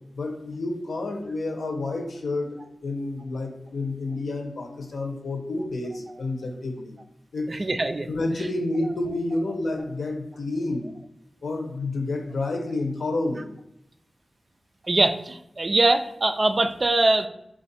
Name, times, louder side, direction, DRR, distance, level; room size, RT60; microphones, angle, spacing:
voice 1, 0.1-6.9 7.3-7.5 8.1-10.9 11.4-13.5, left 2 dB, 80° left, 3 dB, 0.8 m, -29 dB
voice 2, 7.5-8.1 14.9-17.3, right 2 dB, 40° right, 8 dB, 0.3 m, -22 dB
4.5 x 2.5 x 4.0 m, 0.81 s
wide cardioid pair, 105°, 0 cm